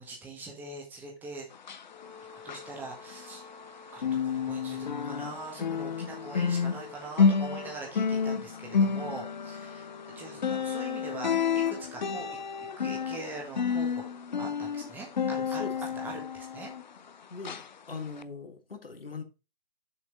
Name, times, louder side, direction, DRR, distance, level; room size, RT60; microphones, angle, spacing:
voice 1, 0.0-1.5 2.4-3.4 3.9-12.3 12.8-14.0 14.4-15.6 15.9-16.7, right 3 dB, 5° right, 1.5 m, -42 dB
sound 1, 1.5-3.7 4.0-17.1 17.4-17.7 18.2-18.3, left 6 dB, 50° left, 0.6 m, -30 dB
Brass instrument, 1.9-8.3, left 4 dB, 15° left, 1.1 m, -51 dB
voice 2, 15.5-16.2 17.3-19.2, left 4 dB, 70° left, 1.7 m, -41 dB
6.9 x 5.0 x 5.0 m
figure-of-eight pair, 135°, 30 cm